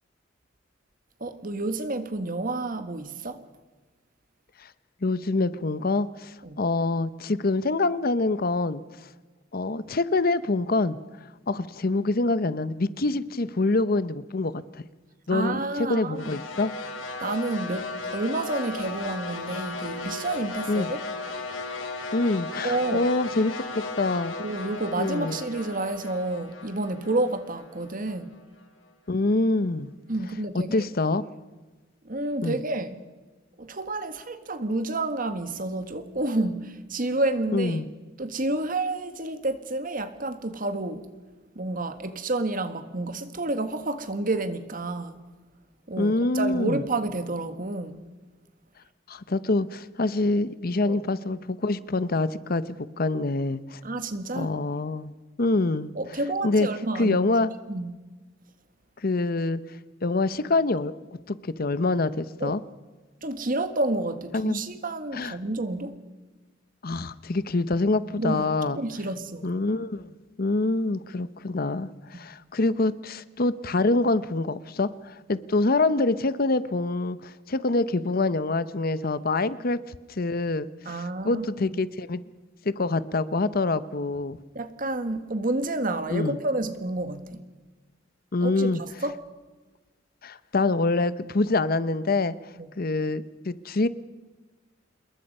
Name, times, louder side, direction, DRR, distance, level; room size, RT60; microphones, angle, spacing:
voice 1, 1.2-3.4 6.4-6.6 15.3-16.4 17.2-21.0 22.6-23.1 24.4-28.3 30.1-30.8 32.0-33.0 33.6-37.8 38.2-41.1 41.6-45.2 45.9-48.0 50.8-51.0 53.8-54.6 56.0-57.2 57.7-58.0 62.4-62.6 63.2-66.0 68.2-69.5 72.1-72.2 80.9-81.8 84.5-87.4 88.4-89.2 92.6-92.7, right 2 dB, 45° right, 10 dB, 1.7 m, -30 dB
voice 2, 5.0-8.8 9.5-11.0 11.5-14.8 15.3-16.7 20.7-20.9 22.1-23.6 24.0-24.4 25.0-25.4 29.1-29.9 30.5-31.2 32.4-32.6 37.5-37.9 46.0-46.8 49.1-52.6 53.0-53.8 54.3-55.1 55.4-55.9 56.4-56.7 57.0-57.5 59.0-59.6 60.0-60.9 61.3-62.6 64.3-64.6 65.1-65.3 66.8-68.8 69.4-70.1 70.4-79.8 80.1-82.2 82.6-84.4 86.1-86.4 88.3-88.8 90.2-92.4 92.8-93.9, left 2 dB, 50° left, 15 dB, 0.8 m, -25 dB
sound 1, 16.2-28.4, left 3 dB, 90° left, 3.6 m, -36 dB
27.5 x 21.5 x 5.5 m, 1.2 s
head